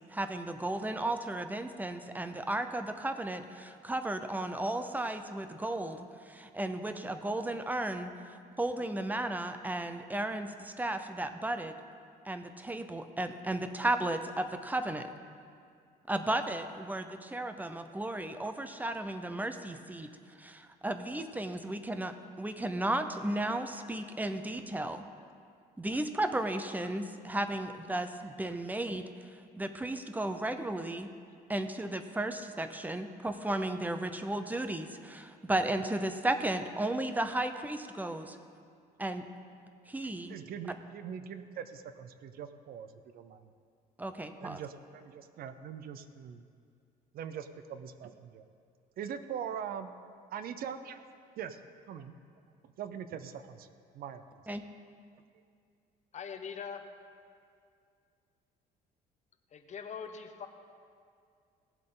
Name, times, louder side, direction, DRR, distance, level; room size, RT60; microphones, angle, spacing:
voice 1, 0.1-11.7 12.2-15.1 16.1-20.1 20.4-25.0 25.8-29.0 29.6-31.1 31.5-38.4 39.0-39.2 39.9-40.4 44.0-44.6 54.5-54.6, right 1 dB, 10° right, 8 dB, 0.7 m, -34 dB
voice 2, 40.3-42.9 43.1-43.5 44.4-46.4 47.1-48.4 49.0-49.9 50.3-51.0 51.4-51.6 51.9-52.1 52.6-53.7 53.9-54.2, right 8 dB, 60° right, 11 dB, 0.7 m, -42 dB
voice 3, 56.1-56.9 59.5-60.5, left 6 dB, 45° left, 7 dB, 0.9 m, -42 dB
18.0 x 7.6 x 3.9 m, 2.3 s
cardioid pair, 110°, 17 cm